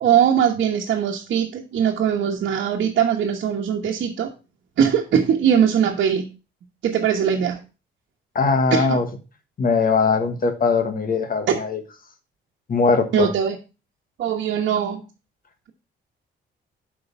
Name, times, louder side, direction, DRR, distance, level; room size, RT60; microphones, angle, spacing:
voice 1, 0.0-4.3 4.8-6.2 6.8-7.6 8.7-9.0 11.5-11.6 13.1-13.6 14.2-15.0, right 8 dB, 70° right, -1 dB, 1.2 m, -21 dB
voice 2, 8.3-9.1 9.6-11.8 12.7-13.3, left 4 dB, 45° left, 8 dB, 1.5 m, -20 dB
7.8 x 5.3 x 5.4 m, 0.31 s
cardioid pair, 90°, 20 cm